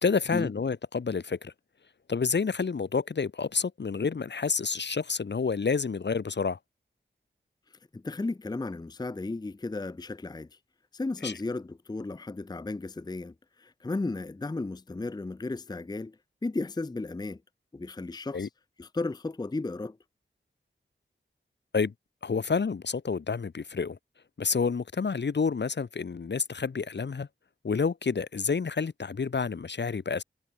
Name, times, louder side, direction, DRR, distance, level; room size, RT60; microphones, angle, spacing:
voice 1, 0.0-1.5 2.1-6.6 11.2-11.3 18.3-18.5 21.7-21.9 22.2-24.0 24.4-27.3 27.6-30.2, left 5 dB, 60° left, 0.9 m, -29 dB
voice 2, 7.7-10.5 10.9-17.4 17.7-18.5 18.8-20.0, left 2 dB, 20° left, 0.5 m, -34 dB
wide cardioid pair, 80°, 21 cm